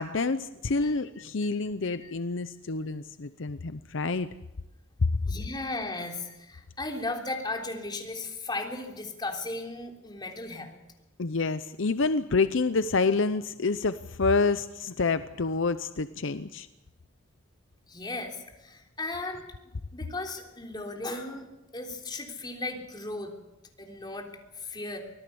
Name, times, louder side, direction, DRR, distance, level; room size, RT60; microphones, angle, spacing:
voice 1, 0.0-4.3 11.2-16.7, left 4 dB, 65° left, 12 dB, 0.7 m, -28 dB
voice 2, 5.3-10.8 17.9-19.5 19.9-21.5 21.7-23.3 23.8-24.3 24.5-25.0, left 2 dB, 20° left, 1 dB, 3.5 m, -36 dB
25.0 x 17.5 x 7.0 m, 0.98 s
head